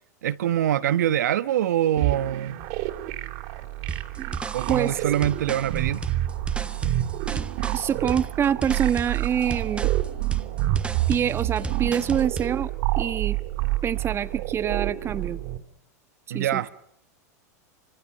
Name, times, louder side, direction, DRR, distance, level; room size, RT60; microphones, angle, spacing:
voice 1, 0.2-2.6 4.5-6.0 16.3-16.7, right 11 dB, 80° right, 1.2 m, -24 dB
sound 1, 2.0-15.6, right 15 dB, 60° right, 3.3 m, -28 dB
sound 2, 3.9-12.6, right 4 dB, 10° right, 1.3 m, -35 dB
voice 2, 4.7-5.0 7.7-9.9 11.1-12.7 13.0-13.4 13.8-15.4 16.3-16.7, right 8 dB, 25° right, 1.4 m, -26 dB
28.0 x 25.5 x 6.7 m
hypercardioid pair, 110°, 9 cm